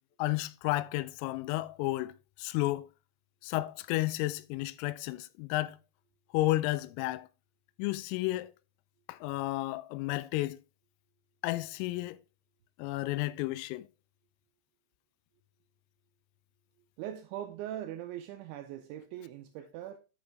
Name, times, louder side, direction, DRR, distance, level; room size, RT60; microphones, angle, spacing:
voice 1, 0.2-2.9 3.4-5.8 6.3-7.3 7.8-8.5 9.1-10.6 11.4-12.2 12.8-13.9, left 18 dB, 85° left, 3.2 m, -32 dB
voice 2, 17.0-20.0, right 11 dB, 85° right, 2.7 m, -41 dB
10.5 x 5.2 x 3.4 m
omnidirectional pair, 5.9 m